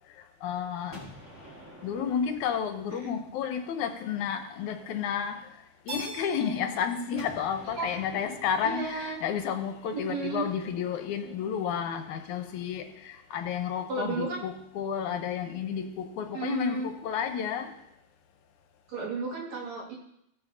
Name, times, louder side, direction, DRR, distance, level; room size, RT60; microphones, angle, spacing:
voice 1, 0.1-1.0 1.8-17.8, left 7 dB, 80° left, 2.3 m, -32 dB
Gunshot gunfire, 0.9-3.7 7.1-11.0, equal, 5° right, 3.8 m, -50 dB
Keyboard (musical), 5.9-8.7, right 2 dB, 90° right, 5.4 m, -44 dB
voice 2, 8.6-9.2 9.9-10.5 13.9-14.4 16.3-16.9 18.9-20.0, right 4 dB, 65° right, 3.4 m, -33 dB
16.5 x 9.6 x 2.7 m
omnidirectional pair, 3.4 m